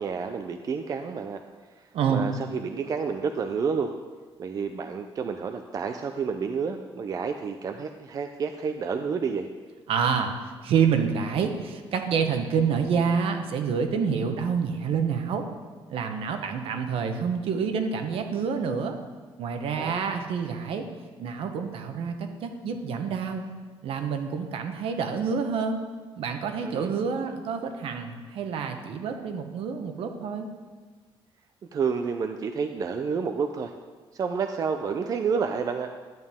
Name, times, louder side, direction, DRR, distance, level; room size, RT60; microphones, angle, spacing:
voice 1, 0.0-1.4 2.1-3.9 4.4-9.5 19.7-20.1 26.6-26.9 31.7-33.7 34.1-35.9, right 5 dB, 40° right, 6 dB, 0.5 m, -29 dB
voice 2, 1.9-2.3 9.9-10.3 10.6-15.4 15.9-19.0 19.4-20.8 21.2-22.1 22.4-23.4 23.8-25.8 26.2-30.5, right 6 dB, 70° right, 5 dB, 1.1 m, -27 dB
11.0 x 9.2 x 3.6 m, 1.4 s
cardioid pair, 150°, 10 cm